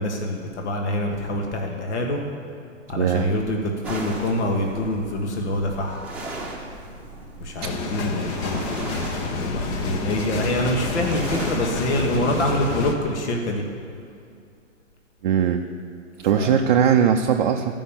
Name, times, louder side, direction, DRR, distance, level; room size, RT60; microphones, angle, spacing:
voice 1, 0.0-2.2 2.9-6.0 7.4-9.0 9.3-13.6 16.3-16.6, left 1 dB, 60° left, 1 dB, 1.5 m, -25 dB
voice 2, 2.9-3.3 7.6-7.7 15.2-15.7 16.2-17.7, right 8 dB, 40° right, 3 dB, 0.5 m, -20 dB
sound 1, 3.8-12.4, right 2 dB, 5° right, 1.1 m, -37 dB
sound 2, 7.6-12.9, left 3 dB, 20° left, 0.5 m, -29 dB
12.5 x 5.4 x 7.2 m, 2.4 s
hypercardioid pair, 125°, 38 cm